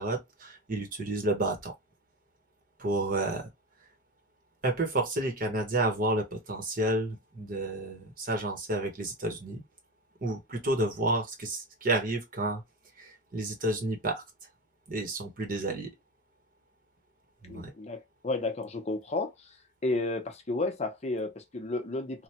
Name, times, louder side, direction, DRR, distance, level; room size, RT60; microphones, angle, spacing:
voice 1, 0.0-1.7 2.8-3.5 4.6-9.6 10.2-12.6 13.0-14.2 14.9-15.9 17.4-17.7, right 2 dB, 45° right, 0.9 m, -30 dB
voice 2, 17.5-19.3 19.8-22.2, left 2 dB, 35° left, 0.6 m, -32 dB
3.3 x 2.1 x 2.8 m
head